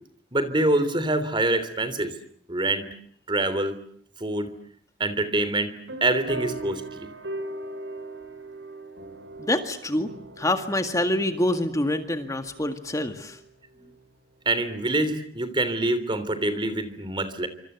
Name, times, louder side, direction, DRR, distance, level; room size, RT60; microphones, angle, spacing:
voice 1, 0.3-2.1 2.5-2.8 3.3-3.8 4.2-4.5 5.0-5.7 6.0-7.1 14.4-17.5, right 2 dB, 25° right, 12 dB, 3.3 m, -25 dB
sound 1, 5.9-14.0, right 2 dB, 85° right, 6.0 m, -39 dB
voice 2, 9.4-10.1 10.4-13.4, left 1 dB, 20° left, 7 dB, 1.9 m, -26 dB
26.5 x 26.5 x 8.1 m, 0.63 s
head